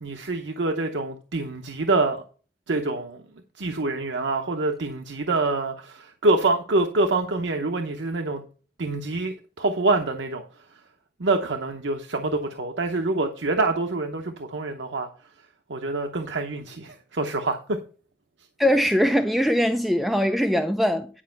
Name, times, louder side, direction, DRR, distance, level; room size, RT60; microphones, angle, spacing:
voice 1, 0.0-2.2 2.7-3.2 3.6-8.4 8.8-10.4 11.2-15.1 15.7-17.8, right 2 dB, 85° right, 0.9 m, -26 dB
voice 2, 18.6-21.1, equal, ahead, 0.4 m, -21 dB
10.0 x 5.3 x 5.7 m
head